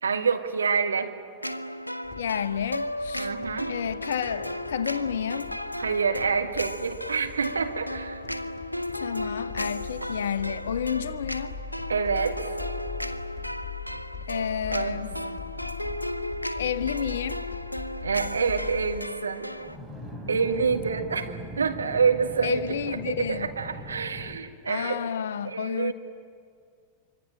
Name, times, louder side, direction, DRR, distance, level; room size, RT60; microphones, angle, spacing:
voice 1, 0.0-1.1 3.2-3.7 5.8-8.2 11.9-12.6 14.7-15.0 15.3-15.4 18.0-19.5 20.3-22.6 23.1-25.0 25.4-25.9, right 5 dB, 75° right, 1.7 m, -27 dB
sound 1, 1.4-19.8, left 1 dB, 90° left, 0.7 m, -35 dB
sound 2, 2.0-19.0, left 7 dB, 30° left, 2.4 m, -41 dB
voice 2, 2.2-3.3 3.7-5.5 9.0-11.5 14.3-15.1 16.5-17.4 22.4-23.5 24.7-25.9, left 8 dB, 65° left, 0.9 m, -30 dB
sound 3, 19.5-24.4, equal, 10° right, 3.6 m, -40 dB
25.5 x 24.5 x 9.0 m
figure-of-eight pair, 90°, 0 cm